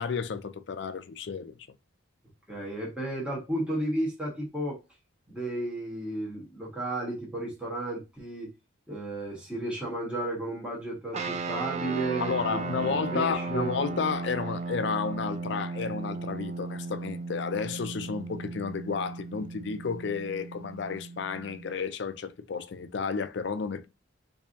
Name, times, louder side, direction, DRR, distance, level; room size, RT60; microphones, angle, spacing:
voice 1, 0.0-1.7 12.2-23.9, left 5 dB, 55° left, 0.4 m, -32 dB
voice 2, 2.5-4.8 5.3-8.5 8.9-13.7, right 1 dB, 5° right, 1.2 m, -33 dB
sound 1, 11.1-21.8, right 3 dB, 35° right, 0.5 m, -36 dB
4.4 x 2.7 x 2.6 m
head